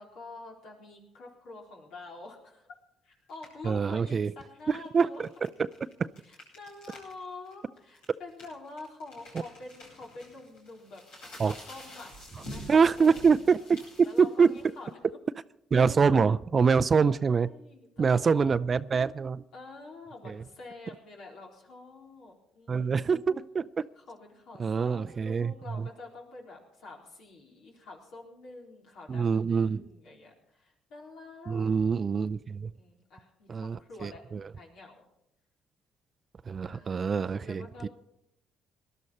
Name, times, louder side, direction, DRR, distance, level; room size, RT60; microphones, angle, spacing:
voice 1, 0.0-2.7 3.0-5.2 6.2-11.0 11.3-12.1 12.5-13.3 14.0-15.1 17.1-18.6 19.5-23.0 23.9-31.9 32.7-34.2 34.5-35.0 36.7-37.1 37.3-37.9, left 3 dB, 70° left, -1 dB, 3.9 m, -47 dB
sound 1, 3.3-3.6 4.6-7.1 7.4-7.5 7.9-14.9, left 1 dB, 90° left, 7.8 m, -48 dB
voice 2, 3.6-4.3 4.7-5.7 6.0-6.1 11.4-11.5 12.7-14.5 15.7-17.5 18.0-19.4 20.2-20.4 22.7-23.8 24.6-25.9 29.1-29.8 31.5-32.7 33.5-34.4 36.5-37.9, right 5 dB, 40° right, 15 dB, 0.5 m, -25 dB
19.5 x 12.0 x 4.3 m, 0.78 s
supercardioid pair, 65°, 0 cm